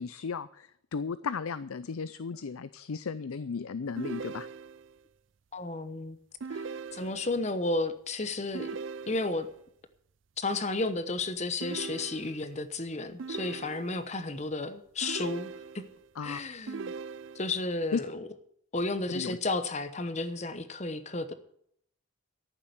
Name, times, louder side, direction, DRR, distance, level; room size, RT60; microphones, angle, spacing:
voice 1, 0.0-4.5 16.2-16.4 17.9-18.0 19.1-19.4, left 5 dB, 85° left, 15 dB, 0.5 m, -35 dB
sound 1, 4.0-5.0 6.4-7.5 8.5-9.6 11.6-12.6 13.2-14.2 15.0-16.0 16.7-17.7, right 5 dB, 65° right, 0.4 m, -40 dB
voice 2, 5.5-6.2 6.5-6.6 6.9-8.7 9.1-9.5 10.4-15.8 16.2-16.9 17.3-18.3 18.7-21.3, left 2 dB, 30° left, 11 dB, 1.0 m, -32 dB
14.0 x 7.4 x 8.1 m, 0.69 s
head